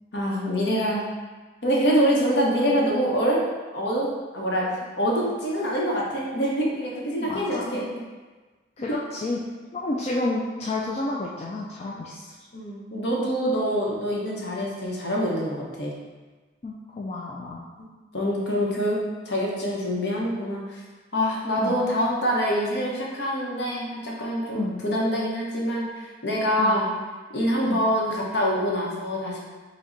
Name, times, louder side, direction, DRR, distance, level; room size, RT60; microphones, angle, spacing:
voice 1, 0.1-1.1 1.6-3.4 3.7-4.1 4.3-7.9 11.9-12.0 12.5-16.0 17.8-17.9 18.1-20.8 21.1-26.9 27.3-29.4, equal, 65° left, -3 dB, 0.9 m, -25 dB
voice 2, 7.1-7.7 8.8-9.4 9.7-12.3 16.6-17.6 21.6-21.8 24.5-24.8 26.6-26.8 27.7-27.8, left 2 dB, 35° left, -4 dB, 0.3 m, -30 dB
5.0 x 2.2 x 3.8 m, 1.3 s
head